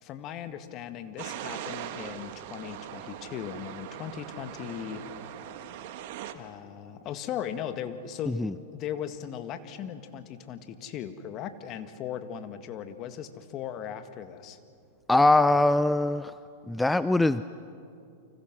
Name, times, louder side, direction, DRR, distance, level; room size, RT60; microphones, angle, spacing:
voice 1, 0.0-5.1 6.3-8.4 8.7-14.6, left 9 dB, 40° left, 9 dB, 1.8 m, -38 dB
sound 1, 1.2-6.3, right 11 dB, 60° right, 1.7 m, -40 dB
voice 2, 15.1-16.3 16.7-17.4, left 2 dB, 5° left, 14 dB, 0.5 m, -22 dB
30.0 x 25.5 x 6.3 m, 2.5 s
hypercardioid pair, 105°, 0 cm